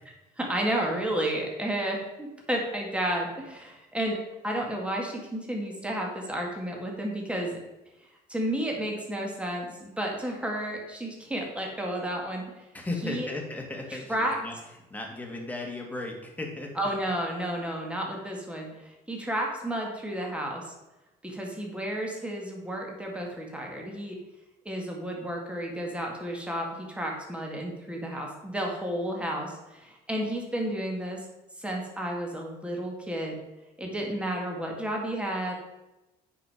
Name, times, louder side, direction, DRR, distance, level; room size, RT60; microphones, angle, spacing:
voice 1, 0.4-4.2 4.4-7.6 8.3-12.4 13.0-13.3 14.1-14.4 16.8-20.7 21.2-24.2 24.7-31.2 31.6-33.4 33.8-35.5, right 1 dB, 5° right, 0 dB, 2.0 m, -32 dB
voice 2, 12.7-14.5 14.9-16.9, left 2 dB, 10° left, 1 dB, 2.0 m, -36 dB
8.6 x 5.5 x 5.0 m, 1.0 s
cardioid pair, 110°, 17 cm